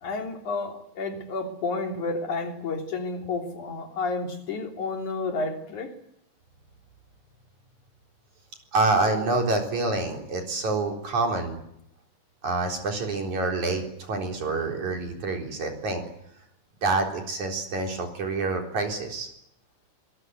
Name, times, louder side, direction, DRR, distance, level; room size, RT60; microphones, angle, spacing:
voice 1, 0.0-5.9, left 3 dB, 75° left, 3 dB, 4.6 m, -31 dB
voice 2, 8.7-11.6 12.4-16.0 16.8-19.3, right 3 dB, 70° right, 2 dB, 5.4 m, -27 dB
25.5 x 22.5 x 9.4 m, 0.75 s
omnidirectional pair, 3.5 m